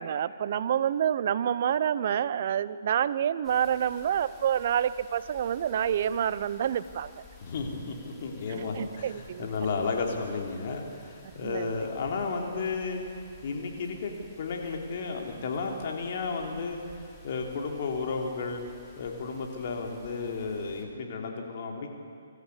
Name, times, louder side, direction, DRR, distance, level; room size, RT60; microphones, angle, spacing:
voice 1, 0.0-7.2 8.5-9.5 11.4-11.7, right 9 dB, 50° right, 16 dB, 0.7 m, -28 dB
sound 1, 3.4-20.8, left 3 dB, 5° left, 3.1 m, -54 dB
voice 2, 7.4-13.0 13.4-14.1 14.4-16.8 17.2-18.6 19.0-21.9, left 4 dB, 50° left, 2 dB, 3.4 m, -33 dB
24.0 x 14.0 x 8.5 m, 2.4 s
hypercardioid pair, 140°, 0 cm